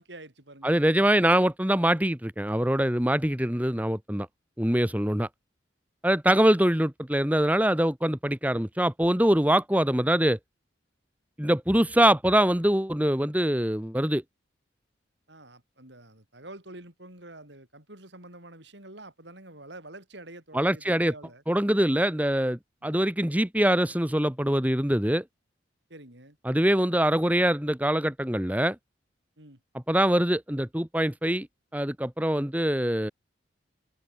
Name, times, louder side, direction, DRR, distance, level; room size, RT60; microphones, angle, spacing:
voice 1, 0.0-1.2 1.9-2.1 15.3-21.4 22.8-23.0 25.9-26.4 29.4-29.6, right 2 dB, 70° right, 7.2 m, -47 dB
voice 2, 0.6-4.3 4.6-5.3 6.0-10.4 11.4-14.2 20.5-21.1 21.5-25.2 26.4-28.7 29.9-31.5 31.7-33.1, right 1 dB, 10° right, 1.4 m, -24 dB
open air
head